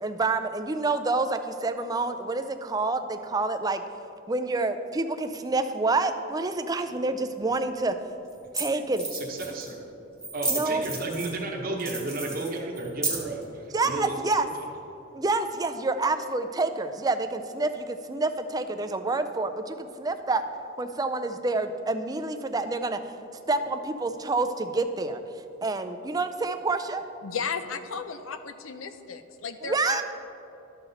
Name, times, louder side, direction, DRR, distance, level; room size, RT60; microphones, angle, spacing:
voice 1, 0.0-3.8 4.3-8.0 8.5-9.1 10.5-10.9 13.7-14.5 15.1-20.4 20.8-23.0 23.5-25.2 25.6-27.0 29.6-30.0, right 3 dB, 20° right, 8 dB, 0.4 m, -28 dB
sound 1, 7.5-7.6 8.3-8.4 8.6-8.7 8.9-9.7 10.2-11.4 11.8-13.4, right 2 dB, 5° left, 1.4 m, -32 dB
voice 2, 9.1-9.8 10.3-13.4 13.8-14.5, right 2 dB, 45° right, -1 dB, 1.0 m, -33 dB
voice 3, 27.2-30.0, left 5 dB, 80° left, 10 dB, 0.6 m, -34 dB
12.5 x 5.8 x 4.0 m, 2.8 s
head